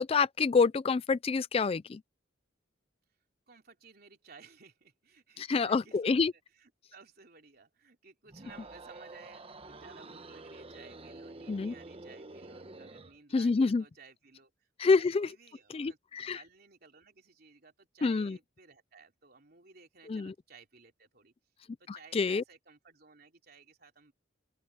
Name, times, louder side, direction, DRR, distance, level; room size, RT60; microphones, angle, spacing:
voice 1, 0.0-2.0 5.5-6.3 11.5-11.7 13.3-13.8 14.8-15.3 15.7-16.4 18.0-18.4 20.1-20.3 21.9-22.4, left 4 dB, 30° left, 0.3 m, -27 dB
voice 2, 3.5-6.2 6.5-21.3 21.8-24.1, right 4 dB, 50° right, 3.4 m, -57 dB
sound 1, 8.3-13.2, right 2 dB, 30° right, 1.1 m, -48 dB
open air
head